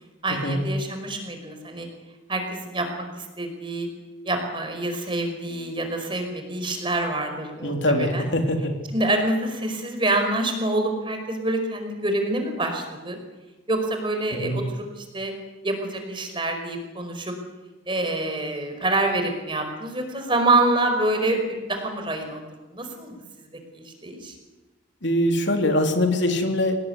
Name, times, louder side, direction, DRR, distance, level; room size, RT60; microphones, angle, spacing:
voice 1, 0.2-1.9 2.3-3.9 4.2-8.3 8.9-13.2 13.7-15.3 15.6-17.3 17.9-22.4 22.7-23.1 23.7-24.3, right 2 dB, 25° right, 5 dB, 5.0 m, -26 dB
voice 2, 7.6-8.7 14.4-14.6 25.0-26.8, left 1 dB, 65° left, 4 dB, 3.5 m, -22 dB
26.5 x 19.0 x 9.8 m, 1.1 s
head